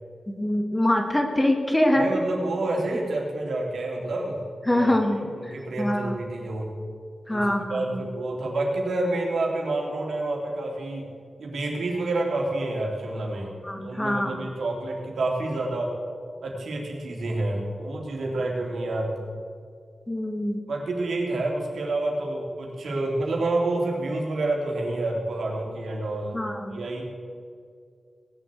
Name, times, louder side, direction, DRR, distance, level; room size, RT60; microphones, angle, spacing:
voice 1, 0.3-2.1 4.7-6.2 7.3-8.1 13.6-14.5 20.1-20.6 26.3-26.9, left 1 dB, 15° left, 4 dB, 1.7 m, -24 dB
voice 2, 1.9-4.4 4.7-4.9 5.4-6.7 7.3-11.0 11.4-13.5 13.8-15.9 16.4-19.2 20.7-26.4 26.7-27.0, right 2 dB, 90° right, -1 dB, 3.1 m, -28 dB
18.5 x 7.5 x 8.2 m, 2.2 s
wide cardioid pair, 105°, 0 cm